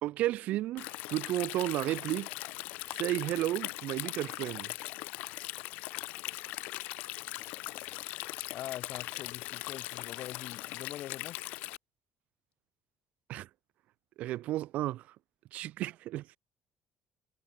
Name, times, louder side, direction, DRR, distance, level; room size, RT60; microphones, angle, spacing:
voice 1, 0.0-2.3 2.9-4.7 13.3-13.5 14.2-15.0 15.5-16.2, right 15 dB, 70° right, 2.0 m, -33 dB
Stream, 0.8-11.8, left 20 dB, 90° left, 1.7 m, -40 dB
voice 2, 8.5-11.4, left 13 dB, 65° left, 5.3 m, -43 dB
cardioid pair, 125°, 3 cm